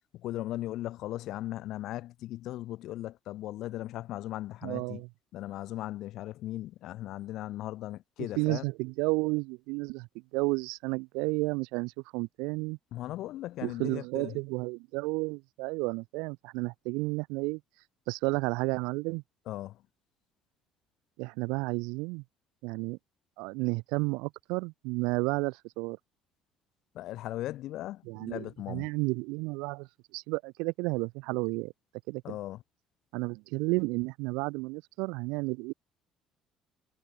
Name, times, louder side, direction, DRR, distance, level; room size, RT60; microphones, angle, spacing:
voice 1, 0.1-5.0 5.3-8.6 12.9-14.4 19.5-19.8 26.9-28.9 32.2-32.6, left 15 dB, 70° left, 1.1 m, -38 dB
voice 2, 4.6-5.1 8.4-10.1 10.3-12.8 13.6-17.6 18.1-19.2 21.2-22.2 22.6-23.0 23.4-26.0 28.1-29.9 30.1-31.7 32.1-32.4 33.1-35.7, right 27 dB, 90° right, 1.0 m, -32 dB
supercardioid pair, 85°, 0 cm